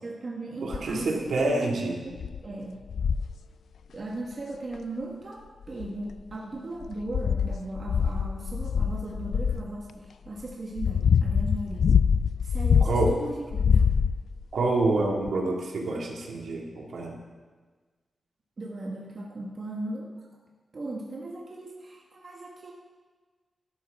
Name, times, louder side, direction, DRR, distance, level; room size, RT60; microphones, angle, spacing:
voice 1, 0.0-2.8 3.9-11.9 12.4-13.8 18.6-20.1 20.7-22.7, right 2 dB, 35° right, -2 dB, 1.2 m, -37 dB
voice 2, 0.6-2.0 12.8-13.1 14.5-17.2, right 2 dB, 70° right, -1 dB, 2.0 m, -27 dB
sound 1, 0.7-1.0 1.6-1.7 2.2-2.4 2.9-3.3 4.7-4.8 5.6-6.3 6.8-9.7 10.4-13.2 13.5-14.4 15.3-15.4, left 7 dB, 75° left, 0.3 m, -24 dB
12.5 x 12.0 x 3.5 m, 1.4 s
wide cardioid pair, 170°, 0 cm